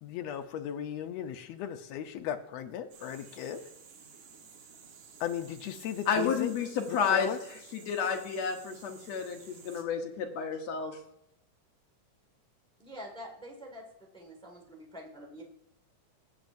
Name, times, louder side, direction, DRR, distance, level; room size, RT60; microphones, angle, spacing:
voice 1, 0.0-3.6 5.2-6.5 6.9-7.4, left 9 dB, 85° left, 6 dB, 1.4 m, -36 dB
sound 1, 2.9-9.8, right 6 dB, 70° right, 2.7 m, -53 dB
voice 2, 6.1-7.3 7.7-11.0, left 6 dB, 65° left, 4 dB, 2.0 m, -31 dB
voice 3, 12.8-13.8 14.1-15.4, equal, 5° left, 0 dB, 0.4 m, -46 dB
16.0 x 8.2 x 2.6 m, 0.78 s
omnidirectional pair, 3.7 m